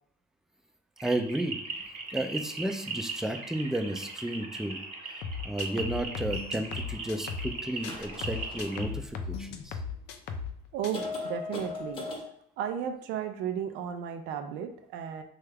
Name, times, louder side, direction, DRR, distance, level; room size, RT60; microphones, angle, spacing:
voice 1, 1.0-1.6 2.1-4.8 5.4-9.8, right 1 dB, 5° right, 5 dB, 0.3 m, -32 dB
sound 1, 1.0-8.8, right 4 dB, 40° right, 1.0 m, -39 dB
sound 2, 5.2-7.6 7.8-10.6 10.8-11.1, left 5 dB, 80° left, 0.4 m, -37 dB
sound 3, 7.7-9.6 10.3-10.4 10.9-12.2, left 3 dB, 30° left, 0.8 m, -39 dB
voice 2, 10.7-12.0 12.6-15.2, right 8 dB, 85° right, 7 dB, 0.4 m, -34 dB
3.2 x 2.3 x 3.3 m, 0.70 s
cardioid pair, 110°, 17 cm